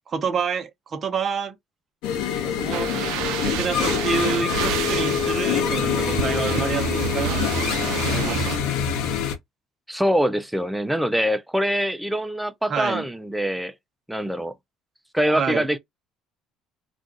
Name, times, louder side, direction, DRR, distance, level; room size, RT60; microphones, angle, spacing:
voice 1, 0.0-1.6 2.4-2.9 3.4-8.6 12.7-13.1 15.3-15.7, right 6 dB, 30° right, 0.8 m, -28 dB
sound 1, 2.0-9.4, left 7 dB, 85° left, 0.7 m, -25 dB
sound 2, 2.7-8.6, right 12 dB, 80° right, 0.4 m, -30 dB
voice 2, 9.9-13.7 14.1-14.5 15.1-15.8, equal, ahead, 0.4 m, -24 dB
2.5 x 2.3 x 3.8 m
cardioid pair, 160°, 0 cm